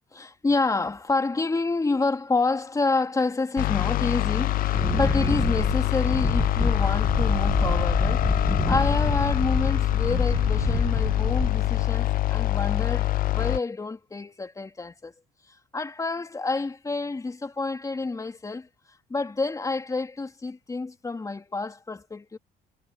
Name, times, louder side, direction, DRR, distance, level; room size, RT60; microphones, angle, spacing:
voice 1, 0.1-15.1 15.7-18.7 19.1-22.4, left 3 dB, 20° left, 2.9 m, -28 dB
sound 1, 3.6-13.6, left 15 dB, 55° left, 0.4 m, -25 dB
Wind, 4.7-11.9, right 1 dB, 5° right, 1.4 m, -28 dB
cardioid pair, 110°, 17 cm